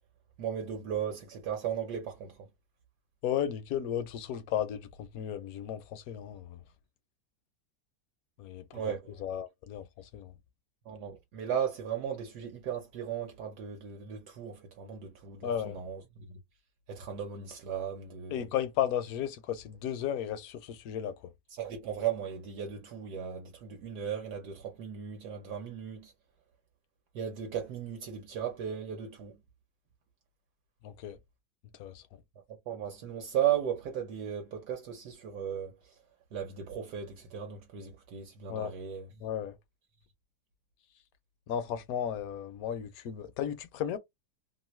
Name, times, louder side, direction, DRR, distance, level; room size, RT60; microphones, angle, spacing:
voice 1, 0.4-2.5 8.7-9.2 10.8-16.4 16.9-18.5 21.5-26.1 27.1-29.4 32.7-36.0 36.3-39.1, right 9 dB, 75° right, 1.3 m, -36 dB
voice 2, 3.2-6.6 8.4-8.8 9.2-10.3 15.4-15.8 18.3-21.3 30.8-31.2 31.8-32.0 38.5-38.7 39.2-39.6 41.5-44.0, left 9 dB, 70° left, 0.9 m, -34 dB
3.1 x 2.5 x 3.0 m
omnidirectional pair, 1.8 m